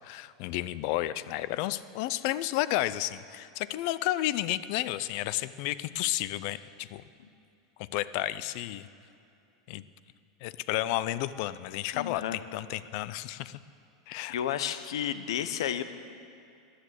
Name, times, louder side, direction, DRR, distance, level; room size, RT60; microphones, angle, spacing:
voice 1, 0.0-7.0 7.8-8.9 9.7-9.8 10.4-13.6 14.1-14.3 14.6-14.9, left 15 dB, 55° left, 16 dB, 0.5 m, -32 dB
voice 2, 11.9-12.4 14.3-15.8, left 10 dB, 85° left, 12 dB, 0.8 m, -31 dB
14.0 x 10.0 x 8.0 m, 2.6 s
supercardioid pair, 135°, 3 cm